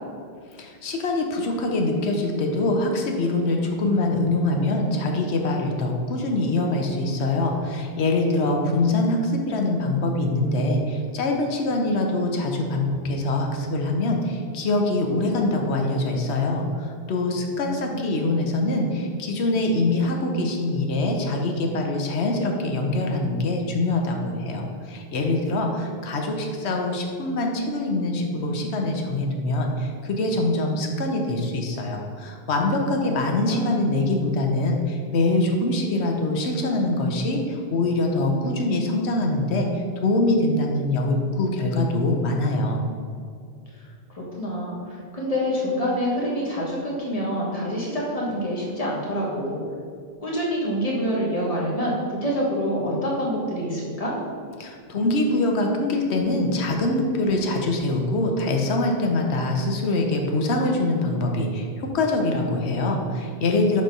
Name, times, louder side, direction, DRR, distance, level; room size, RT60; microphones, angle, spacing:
voice 1, 0.6-42.9 54.6-63.8, left 2 dB, 85° left, 2 dB, 1.0 m, -24 dB
voice 2, 17.7-18.1 33.5-33.7 44.1-49.6 50.2-54.1, equal, 35° left, -4 dB, 1.4 m, -26 dB
6.5 x 3.2 x 5.2 m, 2.2 s
omnidirectional pair, 1.1 m